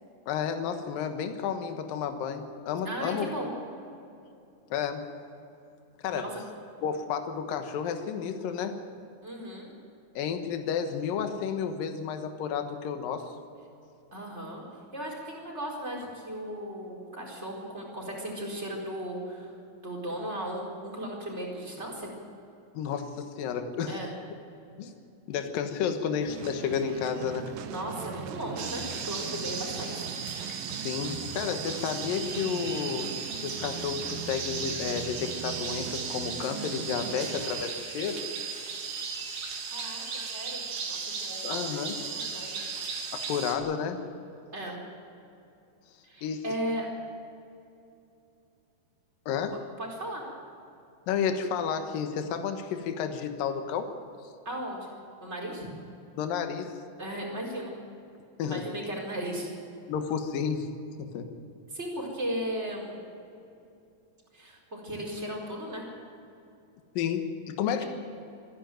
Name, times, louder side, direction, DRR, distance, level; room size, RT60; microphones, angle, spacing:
voice 1, 0.3-3.5 4.7-5.1 6.0-6.3 6.8-8.8 10.2-13.3 22.7-24.0 24.8-24.9 25.3-27.5 30.8-33.1 33.4-38.2 41.4-42.0 43.1-44.0 46.2-46.4 49.3-49.6 51.1-53.9 56.2-56.7 58.4-58.6 59.9-60.7 61.0-61.3 67.0-67.9, left 7 dB, 75° left, 6 dB, 3.0 m, -31 dB
voice 2, 2.8-3.5 6.1-6.3 9.2-9.7 14.1-14.6 14.9-19.5 19.8-22.1 23.9-24.1 27.6-30.1 39.7-40.1 40.3-42.6 44.5-44.8 46.0-46.9 49.8-50.2 54.4-54.9 55.2-55.6 57.0-57.7 58.4-59.5 61.7-63.0 64.3-65.8, right 1 dB, 20° right, -1 dB, 4.5 m, -36 dB
sound 1, 26.3-37.6, right 9 dB, 85° right, 2.8 m, -41 dB
sound 2, 28.6-43.6, right 5 dB, 65° right, 3.7 m, -36 dB
27.0 x 10.5 x 9.2 m, 2.7 s
omnidirectional pair, 4.2 m